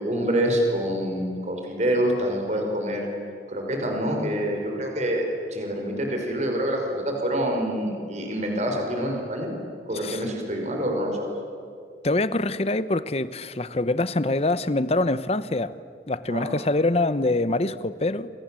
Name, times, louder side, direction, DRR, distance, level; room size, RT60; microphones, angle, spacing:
voice 1, 0.0-3.1 3.5-5.2 5.5-9.5 9.9-11.3 16.3-16.5, equal, 40° right, 2 dB, 5.4 m, -26 dB
voice 2, 12.0-15.7 16.1-18.3, left 2 dB, 35° left, 15 dB, 0.9 m, -24 dB
29.0 x 27.0 x 7.7 m, 2.3 s
head